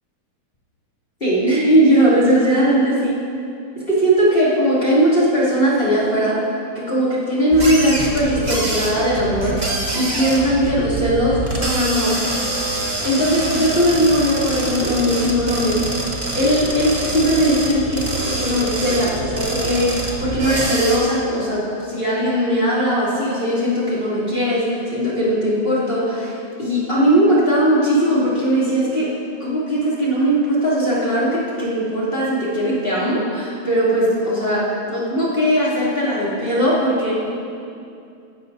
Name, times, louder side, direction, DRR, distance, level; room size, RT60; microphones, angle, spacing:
voice 1, 1.2-3.1 3.9-6.4 6.7-9.6 9.9-12.2 13.0-15.8 16.3-29.1 29.4-37.1, equal, 20° left, -8 dB, 2.7 m, -19 dB
sound 1, 7.5-21.0, right 2 dB, 40° right, 0.6 m, -25 dB
18.0 x 12.0 x 2.7 m, 2.5 s
omnidirectional pair, 3.4 m